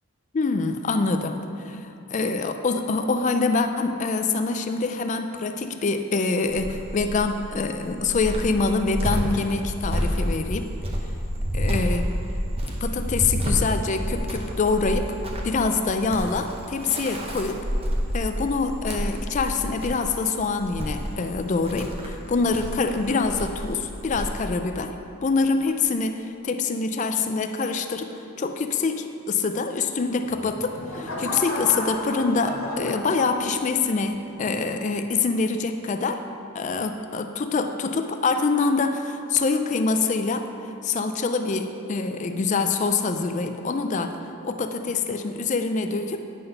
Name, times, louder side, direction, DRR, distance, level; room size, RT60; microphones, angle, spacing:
voice 1, 0.3-1.4 1.6-10.7 11.5-12.1 12.8-15.2 15.4-17.6 18.1-25.0 25.2-28.1 28.4-36.2 36.5-40.5 40.8-44.2 44.4-46.2, left 4 dB, 35° left, 7 dB, 0.3 m, -25 dB
Cricket, 6.5-24.2, equal, 25° right, 0.7 m, -29 dB
sound 1, 30.2-33.8 34.3-34.7, left 1 dB, 70° left, 1.3 m, -33 dB
9.2 x 3.9 x 5.4 m, 2.9 s
head